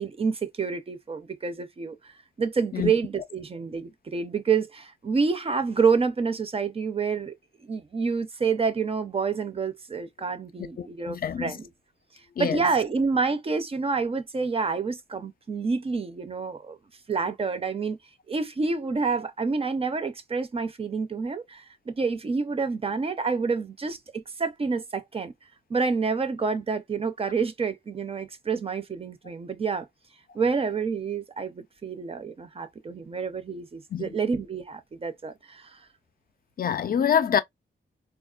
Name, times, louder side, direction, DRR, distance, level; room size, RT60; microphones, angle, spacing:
voice 1, 0.0-2.1 2.4-7.3 7.7-11.7 12.4-16.8 17.1-18.0 18.3-25.3 25.7-29.9 30.3-35.8, right 5 dB, 30° right, 0.4 m, -28 dB
voice 2, 10.8-11.6 12.4-12.7 33.9-34.1 36.6-37.4, left 8 dB, 50° left, 0.4 m, -26 dB
4.1 x 2.3 x 2.3 m
wide cardioid pair, 175°, 20 cm